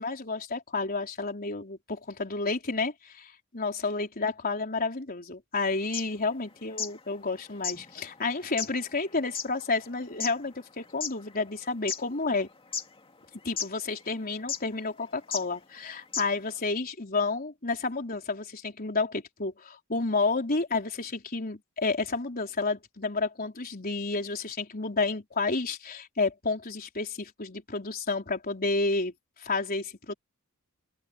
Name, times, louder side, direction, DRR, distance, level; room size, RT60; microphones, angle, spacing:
voice 1, 0.0-12.5 13.4-29.1 29.4-30.1, left 3 dB, 40° left, 4.2 m, -30 dB
sound 1, 5.8-7.0 7.3-7.4 7.6-11.2 11.6-12.4 12.7-13.2 13.6-13.7 14.5-14.7 15.3-15.4 15.8-15.9 16.1-16.5, left 6 dB, 25° left, 2.4 m, -34 dB
open air
head